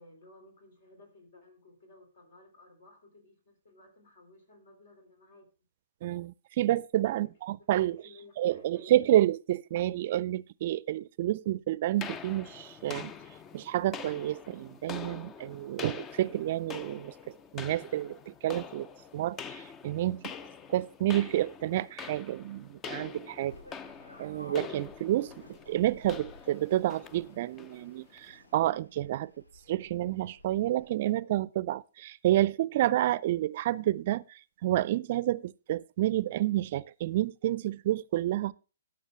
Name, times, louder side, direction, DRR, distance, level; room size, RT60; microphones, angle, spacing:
voice 1, 0.0-5.5 7.1-7.2 7.9-9.2 23.3-23.6, left 2 dB, 60° left, 3.3 m, -56 dB
voice 2, 6.0-8.0 8.4-13.1 13.5-17.1 17.5-18.9 19.1-20.3 20.7-23.5 24.2-25.3 25.7-29.3 29.7-34.2 34.6-38.5, right 14 dB, 50° right, 0.4 m, -29 dB
sound 1, 12.0-28.4, left 6 dB, 20° left, 0.5 m, -45 dB
sound 2, 23.5-30.9, left 1 dB, 90° left, 1.7 m, -55 dB
18.5 x 6.2 x 3.2 m
figure-of-eight pair, 125°, 0 cm